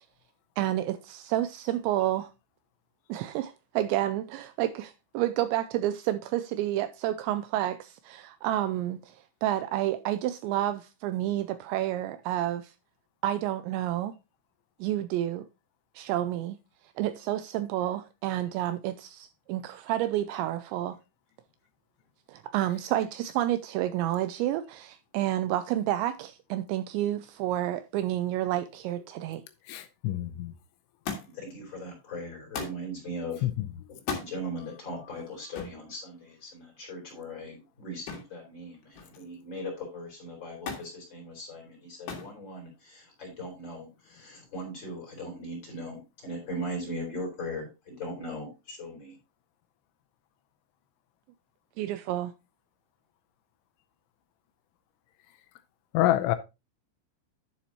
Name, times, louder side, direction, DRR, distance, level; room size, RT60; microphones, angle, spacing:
voice 1, 0.6-2.3 3.1-12.7 13.2-14.1 14.8-15.5 16.0-16.6 17.0-21.0 22.3-29.4 51.8-52.3, right 13 dB, 85° right, 2.6 m, -30 dB
voice 2, 29.7-30.5 33.4-33.5 55.9-56.4, left 14 dB, 80° left, 3.0 m, -26 dB
Thump thud, 31.1-31.5 32.5-32.9 34.0-34.3 35.5-35.8 38.1-38.4 38.7-39.3 40.7-40.9 42.1-42.4 43.3-43.8 44.8-44.9, left 6 dB, 60° left, 3.5 m, -36 dB
voice 3, 31.2-33.5 33.9-49.2, equal, 25° left, 4.3 m, -39 dB
11.0 x 7.2 x 2.9 m
omnidirectional pair, 5.5 m